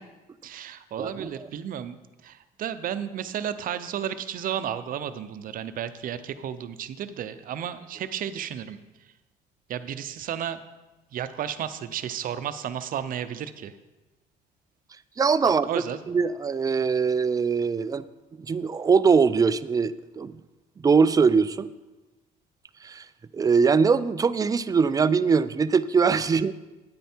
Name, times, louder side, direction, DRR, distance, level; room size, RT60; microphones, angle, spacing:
voice 1, 0.4-8.8 9.7-10.6 11.1-13.7 15.4-16.0, right 9 dB, 55° right, 12 dB, 0.7 m, -33 dB
voice 2, 1.0-1.5 15.2-15.7 16.1-18.0 18.4-20.4 20.8-21.7 22.8-23.1 23.3-26.5, right 5 dB, 20° right, 15 dB, 0.4 m, -22 dB
9.5 x 9.1 x 4.4 m, 1.1 s
cardioid pair, 110°, 17 cm